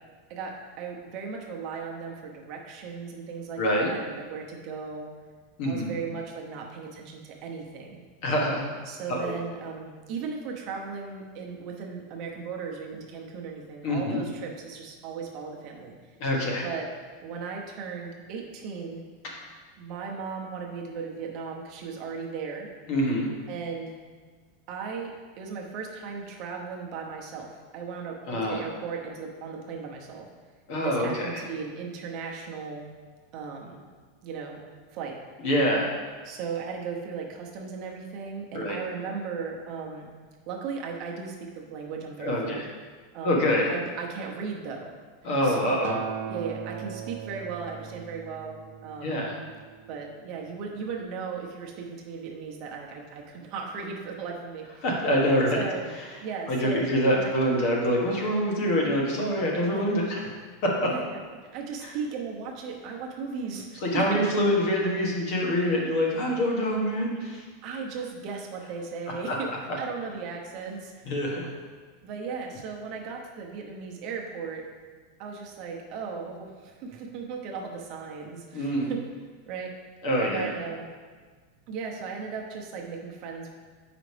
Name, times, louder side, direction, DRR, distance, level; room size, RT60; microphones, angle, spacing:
voice 1, 0.3-5.1 5.6-8.0 8.9-15.9 16.6-16.9 17.2-19.0 19.8-22.7 23.5-24.0 24.7-30.3 30.7-32.9 33.3-33.8 34.2-34.6 34.9-35.2 36.2-40.1 40.5-42.6 43.1-44.9 45.4-45.7 46.3-49.2 49.9-54.8 55.5-55.9 56.2-56.8 57.1-57.3 59.7-59.8 60.9-61.2 61.5-64.0 67.6-69.5 69.8-71.1 72.0-74.6 75.2-79.0 79.5-79.7 80.2-80.8 81.7-83.5, right 5 dB, 40° right, 0 dB, 0.8 m, -36 dB
voice 2, 3.6-3.9 5.6-5.9 8.2-8.6 9.1-9.3 13.8-14.2 16.2-16.6 22.9-23.3 28.3-28.6 30.7-31.4 35.4-35.9 38.5-38.8 42.2-42.7 43.2-43.7 45.2-46.0 49.0-49.4 54.8-55.6 56.5-60.3 60.6-60.9 61.8-61.9 63.8-67.4 69.3-69.4 69.7-69.8 71.1-71.5 78.5-78.9 80.0-80.5, equal, 45° left, -2 dB, 1.4 m, -25 dB
Acoustic guitar, 45.8-50.1 51.0-51.1, right 8 dB, 70° right, 0.4 m, -39 dB
8.0 x 5.0 x 3.3 m, 1.5 s
supercardioid pair, 165°, 0 cm